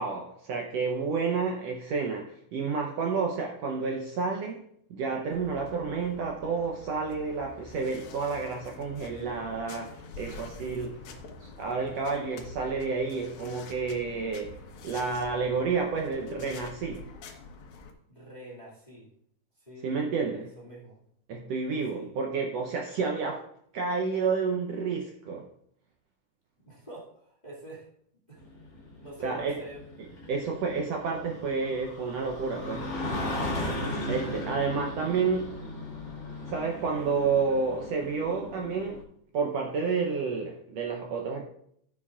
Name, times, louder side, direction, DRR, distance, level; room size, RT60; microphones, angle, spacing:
voice 1, 0.0-4.6 4.9-11.0 11.4-17.1 19.8-20.5 21.3-23.4 23.7-25.4 29.2-29.6 30.3-32.8 34.1-35.5 36.5-39.0 39.3-41.5, right 5 dB, 70° right, 1 dB, 1.7 m, -30 dB
sound 1, 5.3-17.9, left 4 dB, 75° left, 2.4 m, -46 dB
voice 2, 10.8-11.3 18.1-19.1 19.6-19.9 20.6-21.0 21.9-22.1 26.6-27.9 28.3-28.4 29.0-29.8, right 1 dB, 15° left, -5 dB, 1.8 m, -46 dB
sound 2, 28.4-39.0, left 1 dB, 40° left, 2.8 m, -37 dB
14.0 x 7.2 x 2.4 m, 0.68 s
omnidirectional pair, 3.6 m